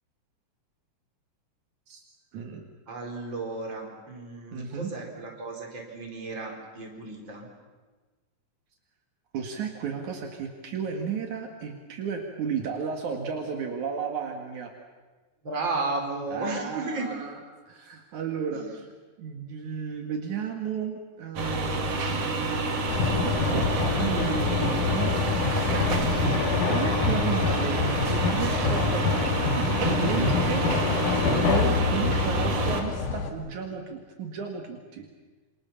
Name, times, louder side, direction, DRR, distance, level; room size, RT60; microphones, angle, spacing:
voice 1, 2.3-2.6 4.5-4.9 9.3-14.7 16.3-17.4 17.7-18.9 19.2-22.2 23.9-25.8 26.7-29.4 29.8-30.6 31.1-35.1, right 6 dB, 75° right, 2 dB, 3.4 m, -33 dB
voice 2, 2.9-7.5 15.4-17.1 18.5-18.7, right 3 dB, 35° right, 1 dB, 5.0 m, -34 dB
sound 1, 21.4-32.8, right 2 dB, 55° right, 3.4 m, -28 dB
sound 2, 22.9-33.3, left 5 dB, 90° left, 3.1 m, -26 dB
28.0 x 25.5 x 7.2 m, 1.3 s
omnidirectional pair, 3.5 m